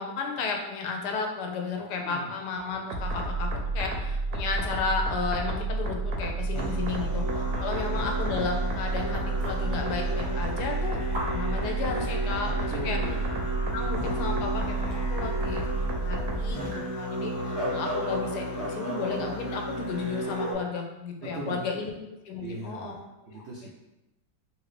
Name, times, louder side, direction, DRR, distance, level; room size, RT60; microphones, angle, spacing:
voice 1, 0.0-13.0 13.7-15.7 16.0-21.9 22.3-23.0 23.3-23.4, left 4 dB, 80° left, 2 dB, 1.1 m, -33 dB
voice 2, 2.0-2.3 7.7-7.8 12.7-13.3 21.2-21.9 22.4-23.8, right 2 dB, 85° right, -4 dB, 0.6 m, -39 dB
sound 1, 2.9-16.5, right 2 dB, 70° right, 1.0 m, -30 dB
Musical instrument, 6.5-20.5, right 1 dB, 30° left, 0.7 m, -33 dB
sound 2, 8.9-17.3, equal, 40° right, 0.7 m, -47 dB
3.0 x 2.5 x 3.2 m, 0.96 s
omnidirectional pair, 1.8 m